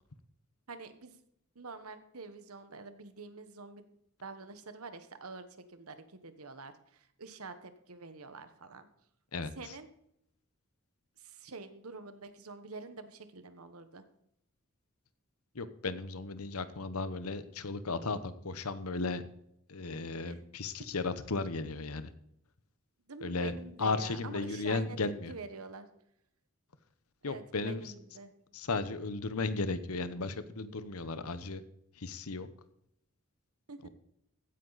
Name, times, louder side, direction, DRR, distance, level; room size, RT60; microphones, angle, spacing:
voice 1, 0.7-1.2 1.5-3.9 4.2-8.9 9.6-9.9 11.2-14.0 20.2-20.4 23.1-25.0 25.3-25.9 27.3-28.3 33.7-33.9, right 4 dB, 80° right, 10 dB, 1.3 m, -46 dB
voice 2, 9.3-9.7 15.5-19.2 19.7-22.1 23.2-25.3 27.2-27.8 28.5-31.6 32.0-32.5 33.8-33.9, left 3 dB, 80° left, 13 dB, 1.0 m, -35 dB
15.5 x 9.5 x 4.1 m, 0.76 s
head